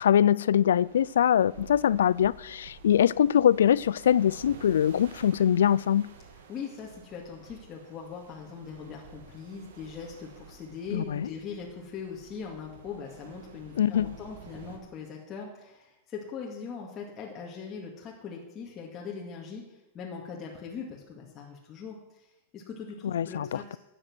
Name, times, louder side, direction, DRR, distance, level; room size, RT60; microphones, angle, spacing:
voice 1, 0.0-6.1 10.9-11.3 13.8-14.2 23.0-23.8, left 9 dB, 90° left, 0.3 m, -23 dB
sound 1, 0.5-14.8, right 6 dB, 80° right, 2.1 m, -51 dB
voice 2, 6.5-22.3 22.5-23.8, left 6 dB, 30° left, 2.1 m, -41 dB
12.5 x 8.8 x 6.2 m
hypercardioid pair, 135°, 0 cm